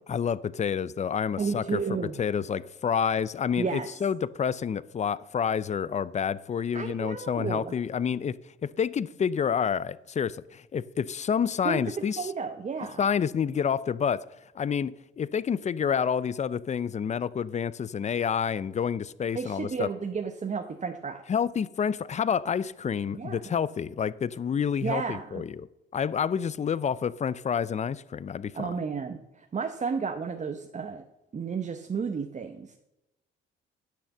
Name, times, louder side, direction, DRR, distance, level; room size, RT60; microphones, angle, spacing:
voice 1, 0.1-1.8 2.2-12.3 13.0-14.2 14.5-19.9 21.3-25.7 25.9-28.7, left 7 dB, 35° left, 0.5 m, -28 dB
voice 2, 1.4-2.2 3.6-3.9 6.7-7.7 11.6-11.8 12.2-13.0 19.3-21.2 23.1-23.5 24.8-25.4 28.5-31.0 31.3-32.7, right 5 dB, 35° right, 0.9 m, -32 dB
10.0 x 6.4 x 7.1 m
cardioid pair, 90°, 20 cm